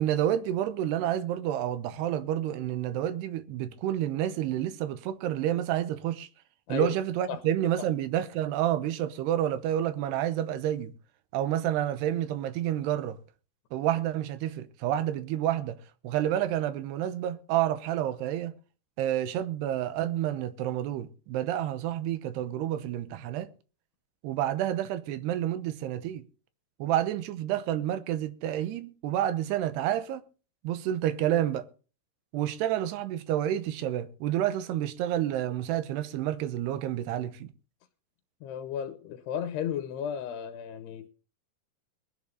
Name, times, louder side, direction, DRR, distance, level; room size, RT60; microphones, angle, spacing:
voice 1, 0.0-6.3 6.7-10.9 11.3-13.2 13.7-15.8 16.0-18.5 19.0-23.5 24.2-26.3 26.8-30.2 30.6-31.7 32.3-37.5, right 11 dB, 85° right, 3.0 m, -29 dB
voice 2, 38.4-41.1, left 9 dB, 85° left, 3.1 m, -34 dB
21.5 x 9.7 x 3.8 m
omnidirectional pair, 4.7 m